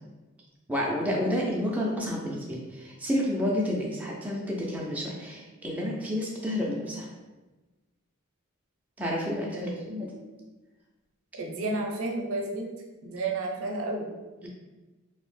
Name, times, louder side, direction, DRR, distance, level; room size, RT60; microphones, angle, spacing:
voice 1, 0.7-7.1 9.0-10.1 14.4-14.5, left 1 dB, 5° right, -3 dB, 0.3 m, -30 dB
voice 2, 9.5-9.9 11.3-12.7 13.0-14.1, right 2 dB, 75° right, 0 dB, 0.5 m, -31 dB
2.7 x 2.0 x 3.1 m, 1.2 s
head